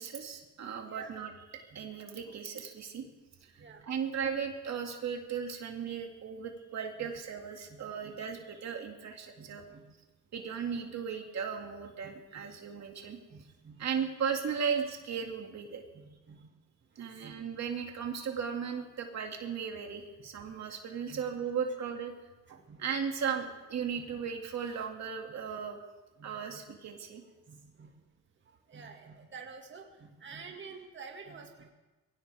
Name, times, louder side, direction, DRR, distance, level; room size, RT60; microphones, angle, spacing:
voice 1, 0.0-3.1 3.8-9.6 10.3-13.2 13.8-15.8 17.0-22.1 22.5-25.8 26.2-27.2, right 7 dB, 65° right, 2 dB, 2.3 m, -36 dB
voice 2, 0.8-1.2 1.7-1.9 3.6-3.9 7.0-7.1 7.7-8.1 9.4-9.9 12.3-12.4 13.3-13.9 15.9-16.5 17.0-17.3 20.2-20.3 21.1-21.2 22.5-22.8 23.9-24.0 26.2-26.6 27.5-27.9 28.5-31.7, right 5 dB, 40° right, 2 dB, 2.1 m, -50 dB
22.0 x 17.0 x 3.5 m, 1.1 s
cardioid pair, 90°, 30 cm